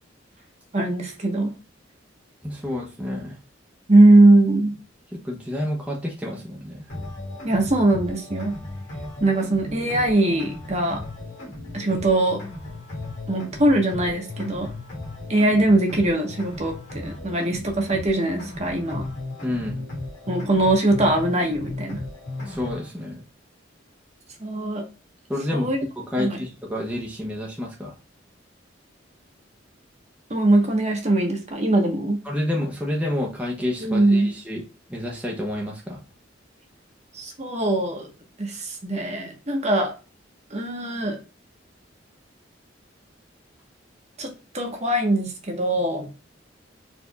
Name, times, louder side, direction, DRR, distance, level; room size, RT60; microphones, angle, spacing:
voice 1, 0.7-1.5 3.9-4.8 7.4-8.5 9.2-11.0 11.7-12.4 13.3-14.7 15.3-19.0 20.3-22.0 24.4-24.8 25.5-25.8 26.2-26.4 30.3-32.2 33.8-34.3 37.1-38.1 38.4-39.9 40.5-41.2 44.2-46.1, right 2 dB, 35° right, 2 dB, 1.1 m, -21 dB
voice 2, 2.4-3.4 5.1-6.9 19.4-19.8 22.4-23.2 25.3-25.7 26.0-27.9 32.2-34.6 34.9-36.0, left 1 dB, 5° right, -2 dB, 0.8 m, -29 dB
sound 1, 6.9-22.9, left 2 dB, 70° left, 2.1 m, -36 dB
4.4 x 3.4 x 2.2 m, 0.31 s
head